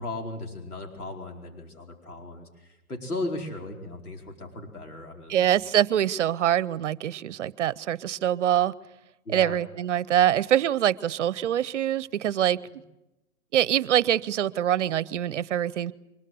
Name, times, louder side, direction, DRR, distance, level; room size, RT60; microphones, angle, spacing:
voice 1, 0.0-5.6 9.2-9.6 12.7-12.8, left 2 dB, 90° left, 2 dB, 4.7 m, -36 dB
voice 2, 5.3-8.7 9.3-12.6 13.5-15.9, right 11 dB, 55° right, 21 dB, 0.9 m, -24 dB
24.0 x 22.0 x 8.0 m, 0.96 s
hypercardioid pair, 135°, 44 cm